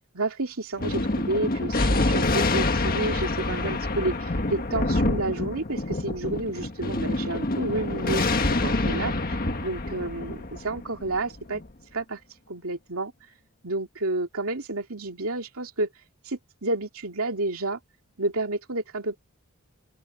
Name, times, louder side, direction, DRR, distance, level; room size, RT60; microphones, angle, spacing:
voice 1, 0.1-8.3 8.6-11.6 11.9-12.2 12.5-13.1 13.6-15.9 16.2-17.8 18.2-19.2, right 2 dB, 70° right, 2.7 m, -30 dB
Thunder, 0.8-11.6, left 2 dB, 40° left, 1.6 m, -26 dB
open air
head